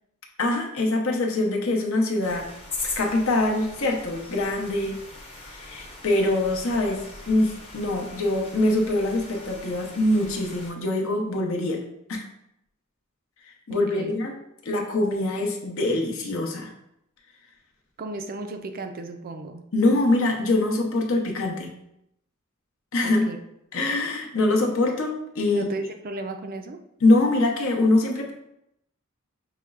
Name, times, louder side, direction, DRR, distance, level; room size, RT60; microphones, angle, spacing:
voice 1, 0.4-2.5 2.8-5.0 5.4-11.8 12.1-12.2 13.7-14.3 14.6-16.7 19.7-21.7 22.9-23.3 23.7-25.6 27.0-28.3, left 2 dB, 70° left, 1 dB, 0.8 m, -24 dB
sound 1, 2.2-10.7, left 3 dB, 25° left, 0.8 m, -40 dB
voice 2, 13.7-14.1 18.0-19.7 23.0-23.4 25.5-26.8, right 2 dB, 40° right, 6 dB, 0.4 m, -35 dB
5.8 x 3.1 x 2.4 m, 0.79 s
head